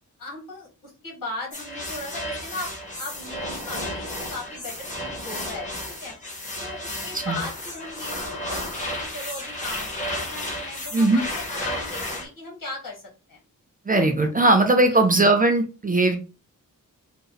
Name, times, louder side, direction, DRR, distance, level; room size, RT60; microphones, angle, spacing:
voice 1, 0.2-2.7 3.0-6.1 6.6-13.4 14.9-15.5, left 2 dB, 70° left, -1 dB, 1.8 m, -38 dB
sound 1, 1.5-12.2, left 1 dB, 20° left, 1.1 m, -33 dB
voice 2, 10.9-11.2 13.9-16.2, right 2 dB, 25° right, 5 dB, 0.5 m, -19 dB
3.9 x 2.0 x 3.9 m, 0.32 s
wide cardioid pair, 160°, 34 cm